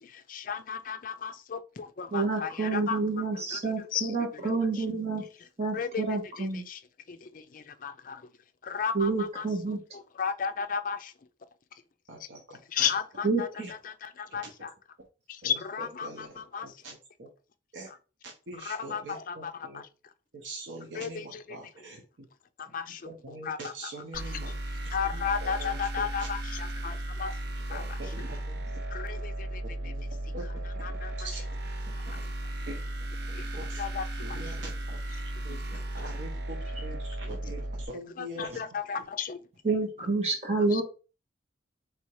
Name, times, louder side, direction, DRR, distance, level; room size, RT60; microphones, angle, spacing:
voice 1, 0.0-4.9 5.7-6.8 7.1-8.3 8.6-11.1 12.2-12.3 12.7-14.7 15.3-16.8 17.9-18.0 18.5-19.9 20.9-21.6 22.6-23.7 24.1-24.4 24.7-27.4 27.7-28.1 28.9-29.9 30.2-31.4 32.1-32.2 33.3-34.5 35.5-35.6 38.2-39.4 40.7-40.8, left 7 dB, 45° left, 0.4 m, -35 dB
voice 2, 2.1-5.2 5.6-6.6 8.9-9.8 13.2-13.7 39.6-40.8, right 3 dB, 35° right, 1.5 m, -28 dB
voice 3, 12.1-12.9 13.6-13.7 14.3-14.4 15.4-15.5 15.8-16.3 16.6-17.3 17.7-17.9 18.5-19.8 20.3-22.0 23.1-24.5 24.8-25.8 27.7-28.6 29.6-30.0 30.3-31.5 32.1-32.2 32.7-32.8 33.5-33.8 34.2-35.0 35.4-38.6, right 1 dB, 85° right, 0.8 m, -43 dB
sound 1, 24.1-37.8, right 1 dB, 60° right, 0.7 m, -35 dB
3.5 x 2.8 x 4.7 m
head